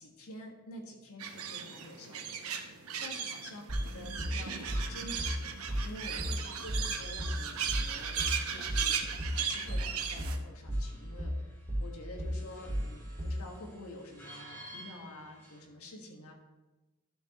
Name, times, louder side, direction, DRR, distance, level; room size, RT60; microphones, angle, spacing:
voice 1, 0.0-5.5 5.8-8.2 8.5-16.3, left 1 dB, 75° left, 1 dB, 1.6 m, -48 dB
sound 1, 1.2-10.4, right 7 dB, 75° right, 0.9 m, -37 dB
sound 2, 3.7-13.5, equal, 35° right, 2.0 m, -34 dB
sound 3, 4.3-15.6, right 1 dB, 10° left, 1.8 m, -56 dB
12.5 x 7.1 x 3.0 m, 1.1 s
head